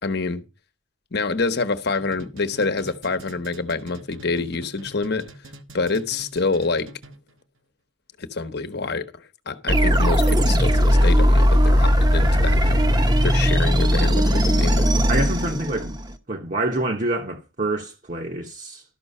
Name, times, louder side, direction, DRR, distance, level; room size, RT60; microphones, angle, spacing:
voice 1, 0.0-0.4 1.1-5.3 5.7-6.9 8.2-12.8 13.2-14.9, left 3 dB, 55° left, 1.1 m, -27 dB
sound 1, 1.9-7.4, right 1 dB, 80° right, 1.2 m, -44 dB
sound 2, 9.7-16.1, equal, 20° right, 0.9 m, -18 dB
voice 2, 15.1-15.9 16.3-18.8, right 2 dB, 40° right, 1.1 m, -26 dB
12.5 x 6.1 x 5.5 m
head